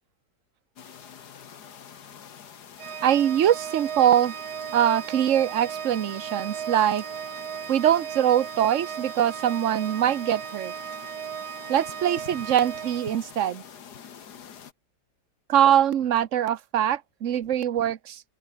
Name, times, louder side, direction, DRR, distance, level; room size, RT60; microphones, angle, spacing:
sound 1, 0.8-14.7, left 8 dB, 75° left, 2.0 m, -46 dB
Organ, 2.8-13.6, right 9 dB, 70° right, 1.7 m, -36 dB
voice 1, 3.0-4.3 4.7-7.0 7.7-10.7 11.7-13.6 15.5-18.2, right 10 dB, 55° right, 1.2 m, -23 dB
open air
omnidirectional pair, 1.8 m